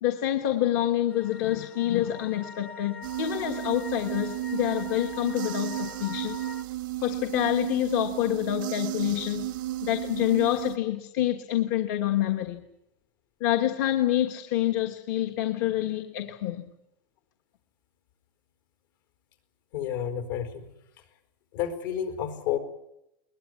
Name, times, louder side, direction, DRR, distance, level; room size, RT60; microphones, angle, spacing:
voice 1, 0.0-6.4 7.0-9.5 9.8-12.7 13.4-16.6, left 13 dB, 55° left, 1.4 m, -27 dB
sound 1, 1.1-6.6, left 4 dB, 15° left, 0.8 m, -44 dB
sound 2, 3.0-10.8, right 16 dB, 85° right, 0.8 m, -34 dB
voice 2, 19.7-21.1 21.5-22.6, left 9 dB, 75° left, 4.6 m, -31 dB
21.0 x 21.0 x 9.7 m
supercardioid pair, 165°, 11 cm